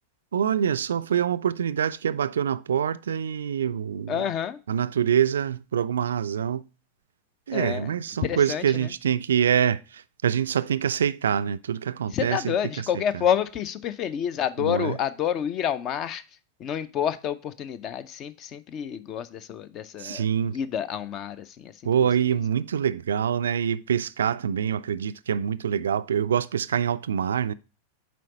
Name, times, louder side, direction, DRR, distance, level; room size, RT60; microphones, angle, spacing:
voice 1, 0.3-4.3 4.7-6.7 7.5-12.9 13.1-13.2 14.6-15.0 20.0-20.6 21.8-27.5, right 8 dB, 65° right, 0.3 m, -25 dB
voice 2, 4.1-4.6 7.5-7.9 8.2-8.9 12.1-16.2 16.6-20.2 20.5-21.7, left 9 dB, 35° left, 0.5 m, -28 dB
7.6 x 4.8 x 3.9 m
figure-of-eight pair, 90°, 0 cm